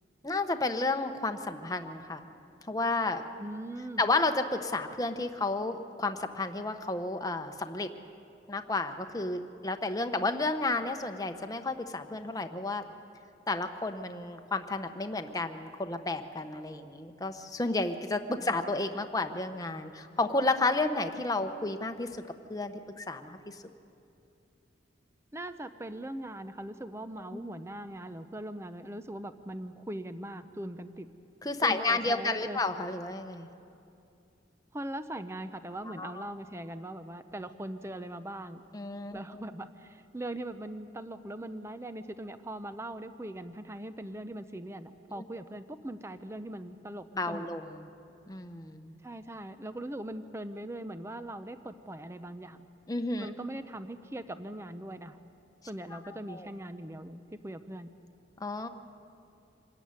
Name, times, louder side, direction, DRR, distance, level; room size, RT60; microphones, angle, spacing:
voice 1, 0.2-2.3 2.7-3.2 4.0-7.9 8.5-12.8 13.5-22.2 22.5-23.6 27.3-27.4 31.4-33.5 36.0-36.1 38.7-39.4 47.1-47.8 48.3-48.9 52.9-53.3 55.9-56.0 56.3-56.5 58.4-58.7, left 2 dB, 20° left, 7 dB, 0.9 m, -31 dB
voice 2, 3.4-4.0 18.4-18.5 25.3-31.1 31.6-32.6 34.7-38.6 39.1-47.5 49.0-52.6 53.2-55.2 55.7-57.9, right 1 dB, 15° right, 10 dB, 0.6 m, -40 dB
25.5 x 14.0 x 9.6 m, 2.6 s
head